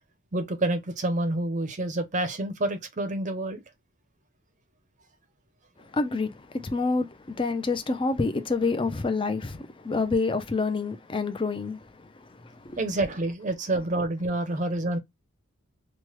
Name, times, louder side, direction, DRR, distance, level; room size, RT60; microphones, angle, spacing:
voice 1, 0.3-3.6 9.9-10.0 12.8-15.0, right 2 dB, 35° right, 0.6 m, -28 dB
voice 2, 5.9-11.8 12.6-12.8, left 3 dB, 25° left, 0.4 m, -27 dB
3.1 x 2.1 x 3.0 m
head